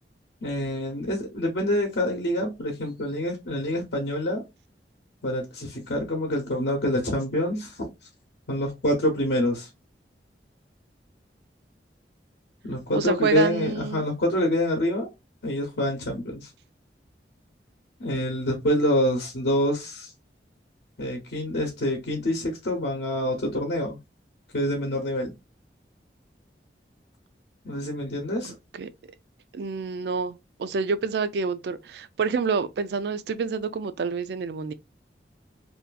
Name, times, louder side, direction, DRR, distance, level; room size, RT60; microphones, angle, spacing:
voice 1, 0.4-4.4 5.2-7.9 8.5-9.7 12.6-15.1 15.4-16.5 18.0-20.1 21.0-24.0 24.5-25.3 27.6-28.5, left 1 dB, 75° left, 0.7 m, -26 dB
voice 2, 12.9-14.0 28.8-28.9 29.5-34.7, right 5 dB, 70° right, 0.3 m, -28 dB
2.5 x 2.3 x 2.4 m
head